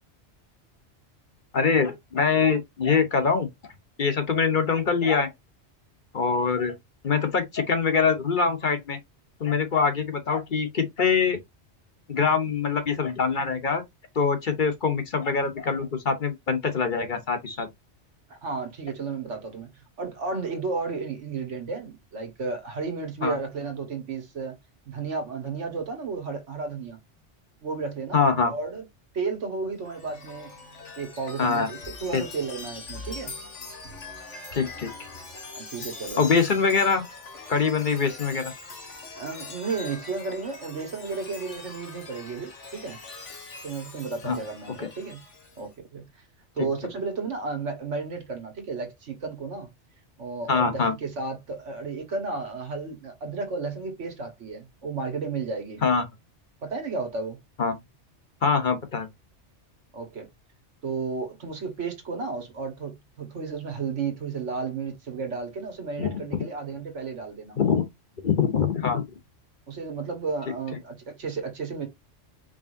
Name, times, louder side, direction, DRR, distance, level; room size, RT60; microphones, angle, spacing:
voice 1, 1.5-3.5 4.0-5.3 6.1-6.7 7.0-9.0 9.4-11.4 12.1-13.8 14.1-17.7 23.2-23.4 28.1-28.5 31.4-31.7 32.1-32.2 34.5-34.9 36.2-37.0 37.5-38.5 44.2-44.4 44.8-44.9 50.5-50.9 55.8-56.0 57.6-57.7 58.4-59.1 66.0-66.2 67.6-67.8 68.2-69.0, left 5 dB, 45° left, 0.9 m, -24 dB
voice 2, 18.3-19.7 20.0-24.6 24.9-27.0 27.6-28.8 29.1-30.5 31.0-33.3 35.4-36.2 39.2-43.0 43.6-45.2 45.6-46.0 46.5-49.7 50.2-55.8 56.6-57.4 59.9-60.3 60.8-67.6 69.7-71.9, right 4 dB, 85° right, 1.7 m, -33 dB
Chime, 29.8-45.7, left 3 dB, 85° left, 1.9 m, -42 dB
4.9 x 3.3 x 2.6 m
omnidirectional pair, 1.2 m